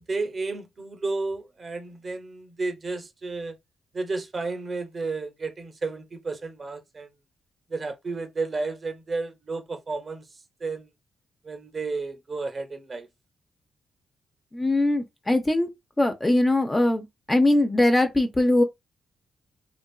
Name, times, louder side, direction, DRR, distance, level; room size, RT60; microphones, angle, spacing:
voice 1, 0.1-3.6 3.9-7.1 7.7-10.3 10.6-10.9 11.4-13.1, right 3 dB, 35° right, 0.6 m, -32 dB
voice 2, 14.5-15.7 16.0-18.6, left 1 dB, 15° left, 0.4 m, -21 dB
2.8 x 2.5 x 2.3 m
cardioid pair, 125°, 0 cm